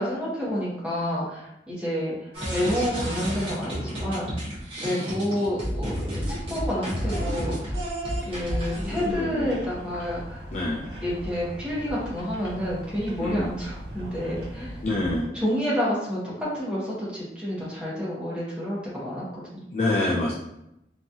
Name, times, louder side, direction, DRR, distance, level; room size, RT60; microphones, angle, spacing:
voice 1, 0.0-4.5 4.8-7.8 8.2-10.5 11.0-14.8 15.3-19.6, equal, 5° right, -8 dB, 0.9 m, -29 dB
sound 1, 2.3-9.1, equal, 30° right, 1.0 m, -31 dB
sound 2, 8.3-15.3, equal, 75° right, 0.8 m, -38 dB
voice 2, 8.9-9.5 10.5-10.8 13.2-13.5 14.8-15.3 19.7-20.3, left 2 dB, 40° left, -4 dB, 0.3 m, -26 dB
2.9 x 2.3 x 2.6 m, 0.84 s
head